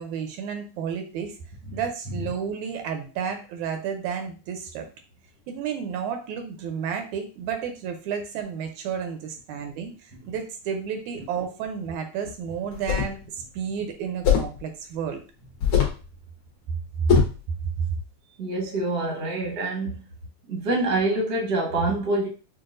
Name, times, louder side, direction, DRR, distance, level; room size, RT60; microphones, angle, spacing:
voice 1, 0.0-1.3 1.7-4.9 5.5-15.2 17.0-17.2 17.8-17.9, right 7 dB, 80° right, 5 dB, 1.9 m, -31 dB
sound 1, 12.7-13.2 14.2-14.6 15.6-16.0 17.1-17.4, left 8 dB, 60° left, 1.4 m, -21 dB
voice 2, 18.4-20.0 20.5-22.3, right 2 dB, 55° right, -2 dB, 1.0 m, -26 dB
5.8 x 2.4 x 2.5 m, 0.35 s
omnidirectional pair, 3.4 m